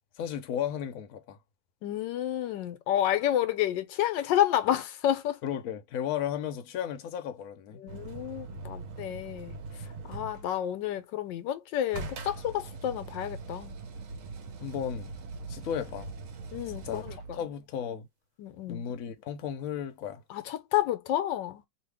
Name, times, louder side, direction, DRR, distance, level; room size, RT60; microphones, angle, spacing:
voice 1, 0.2-1.4 5.4-7.8 10.2-10.3 14.6-15.1 15.5-16.1 16.8-17.0 17.3-18.1 18.7-20.2, left 9 dB, 60° left, 1.0 m, -34 dB
voice 2, 1.8-5.4 7.8-9.5 10.1-13.8 16.5-17.4 18.4-18.8 20.3-21.7, left 12 dB, 85° left, 1.3 m, -30 dB
sound 1, 7.9-10.6 11.9-17.5 20.3-20.4, right 3 dB, 65° right, 0.9 m, -41 dB
2.8 x 2.7 x 3.3 m
omnidirectional pair, 2.0 m